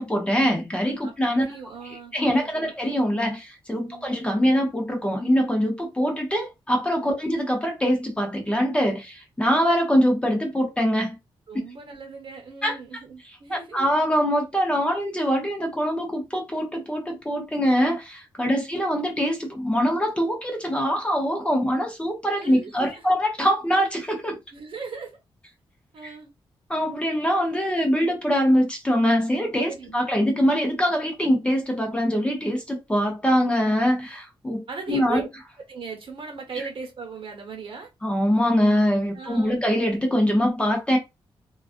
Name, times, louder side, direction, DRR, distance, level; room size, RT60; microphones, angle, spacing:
voice 1, 0.0-1.4 2.1-11.2 12.6-12.8 13.5-24.4 26.0-26.1 26.7-35.2 38.0-41.0, equal, 10° left, 0.7 m, -23 dB
voice 2, 1.0-2.7 3.8-4.1 11.5-13.9 18.4-18.7 22.3-23.2 24.5-25.2 25.9-26.3 29.7-30.1 34.7-35.3 35.7-37.9 39.1-39.6, right 5 dB, 70° right, 1.0 m, -38 dB
2.3 x 2.3 x 2.4 m
wide cardioid pair, 125°, 9 cm